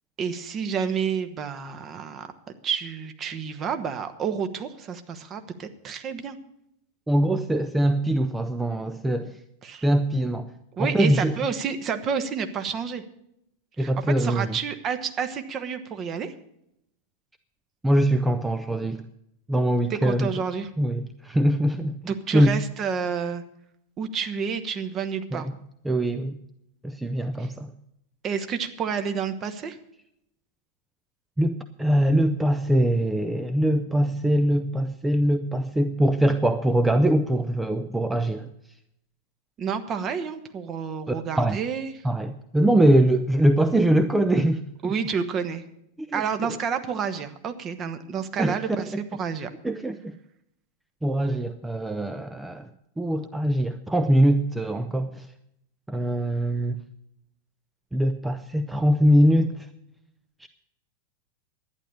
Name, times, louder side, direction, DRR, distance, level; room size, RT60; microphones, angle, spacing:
voice 1, 0.2-2.3 2.6-6.4 9.6-9.9 10.7-13.0 13.8-16.3 19.9-20.7 22.1-23.4 24.0-25.5 27.4-27.5 28.2-29.8 39.6-41.9 44.8-45.6 46.1-49.5, right 6 dB, 30° right, 8 dB, 1.3 m, -29 dB
voice 2, 7.1-9.4 9.8-10.5 10.8-11.3 13.8-14.5 17.8-19.0 19.5-20.3 20.8-22.6 25.3-25.5 25.8-26.4 26.8-27.7 31.4-38.5 41.1-41.6 42.0-44.9 46.0-46.6 48.4-49.0 49.6-50.1 51.0-52.7 53.0-55.3 55.9-56.8 57.9-59.7 60.4-60.5, right 1 dB, 5° right, 8 dB, 0.6 m, -23 dB
11.5 x 10.0 x 6.9 m, 0.77 s
figure-of-eight pair, 90°, 0 cm